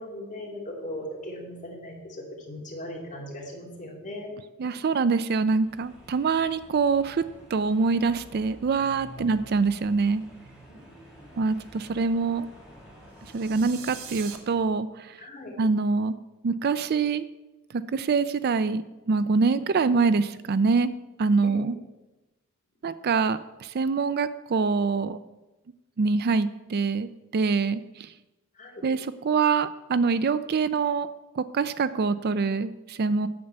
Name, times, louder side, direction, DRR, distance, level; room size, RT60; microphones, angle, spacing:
voice 1, 0.0-4.3 9.2-9.3 10.7-11.4 15.2-15.5 21.4-21.6 28.5-28.8, left 1 dB, 35° left, -2 dB, 2.9 m, -39 dB
voice 2, 4.6-7.3 7.5-10.2 11.4-12.5 13.3-15.2 15.6-16.2 16.4-17.3 17.7-20.9 21.2-21.8 22.8-25.2 26.0-28.1 28.8-31.1 31.4-33.3, right 4 dB, 45° right, 14 dB, 0.4 m, -25 dB
sound 1, 5.6-14.7, equal, 5° right, 3.7 m, -49 dB
sound 2, 13.2-14.4, right 8 dB, 65° right, 1.2 m, -42 dB
8.7 x 6.8 x 8.1 m, 1.1 s
head